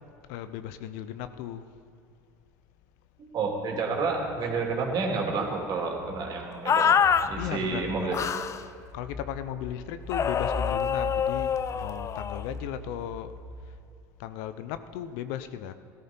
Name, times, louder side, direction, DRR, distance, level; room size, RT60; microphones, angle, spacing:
voice 1, 0.3-1.6 7.4-8.1 8.9-13.4 14.2-15.7, left 10 dB, 65° left, 12 dB, 0.7 m, -36 dB
voice 2, 3.2-6.9 7.2-8.2, right 4 dB, 45° right, 0 dB, 3.0 m, -30 dB
sound 1, 4.1-13.6, left 3 dB, 50° left, 3.6 m, -41 dB
sound 2, 6.7-7.3 8.1-8.6 10.1-12.4, left 7 dB, 30° left, 0.6 m, -25 dB
17.5 x 13.5 x 4.4 m, 2.5 s
hypercardioid pair, 85°, 10 cm